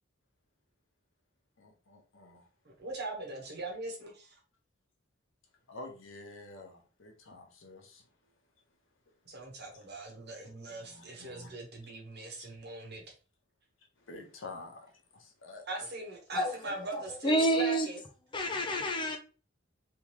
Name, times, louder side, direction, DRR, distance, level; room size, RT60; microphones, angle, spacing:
voice 1, 1.6-2.5 5.7-8.0 10.7-11.5 14.1-15.9, left 2 dB, 70° left, 1.1 m, -49 dB
voice 2, 2.6-4.4 9.2-13.0 15.7-18.0, right 2 dB, 55° right, 1.3 m, -41 dB
voice 3, 16.3-17.9 18.3-19.2, right 1 dB, 25° left, 0.6 m, -29 dB
3.5 x 3.5 x 3.0 m
head